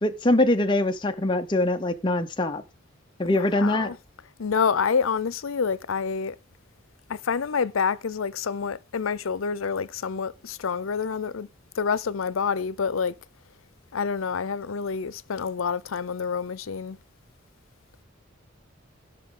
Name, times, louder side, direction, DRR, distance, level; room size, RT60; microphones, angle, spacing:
voice 1, 0.0-2.6 3.2-3.9, left 1 dB, 25° left, 0.7 m, -23 dB
voice 2, 3.2-4.0 4.4-6.4 7.1-11.5 11.8-13.1 13.9-17.0, left 6 dB, 90° left, 0.6 m, -27 dB
17.0 x 6.1 x 3.8 m
head